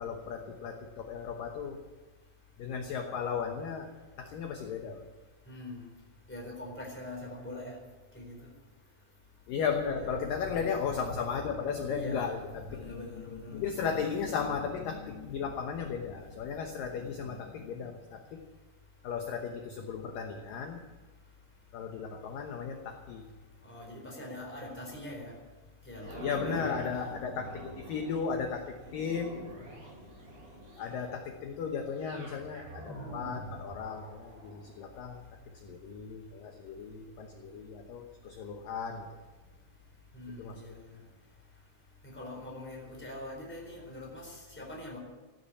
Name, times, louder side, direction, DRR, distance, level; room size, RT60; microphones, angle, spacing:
voice 1, 0.0-1.8 2.6-3.9 4.2-5.1 9.5-18.4 19.0-20.8 21.7-23.2 26.2-29.5 30.8-39.2 40.4-40.6, left 6 dB, 70° left, 4 dB, 2.3 m, -35 dB
voice 2, 5.5-5.8 6.3-7.7 8.1-8.4 9.9-10.1 11.9-12.4 12.7-13.7 23.6-25.3 25.9-27.2 40.1-40.8 42.0-45.0, left 1 dB, 5° left, -1 dB, 3.5 m, -43 dB
sound 1, 25.9-40.1 40.7-40.8, right 1 dB, 60° right, 6.0 m, -46 dB
15.0 x 10.0 x 8.6 m, 1.3 s
omnidirectional pair, 5.0 m